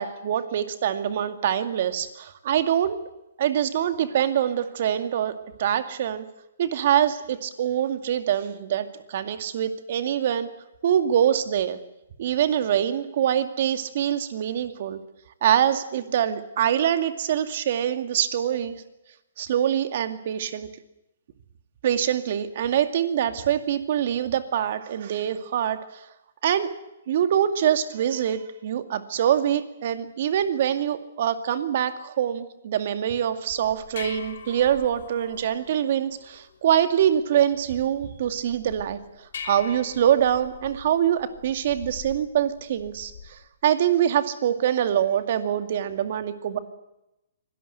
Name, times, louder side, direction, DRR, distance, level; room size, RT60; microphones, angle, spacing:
voice 1, 0.0-3.0 3.4-6.3 6.6-10.5 10.8-11.8 12.2-15.0 15.4-18.8 19.4-20.7 21.8-26.0 26.4-26.7 27.1-46.6, right 10 dB, 55° right, 9 dB, 2.3 m, -24 dB
sound 1, 33.5-43.5, left 7 dB, 70° left, 3.4 m, -44 dB
24.5 x 18.5 x 8.1 m, 0.91 s
hypercardioid pair, 150°, 0 cm